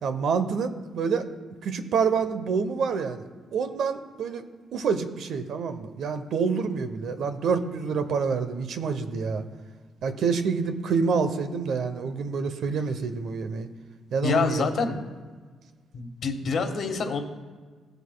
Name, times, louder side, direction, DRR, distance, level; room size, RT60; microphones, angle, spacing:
voice 1, 0.0-1.3 1.6-4.4 4.7-9.4 10.0-13.7 14.1-14.6, right 5 dB, 70° right, 9 dB, 0.8 m, -27 dB
voice 2, 14.2-15.0 15.9-17.2, left 4 dB, 60° left, 5 dB, 1.4 m, -26 dB
16.0 x 7.9 x 2.3 m, 1.5 s
cardioid pair, 90°, 0 cm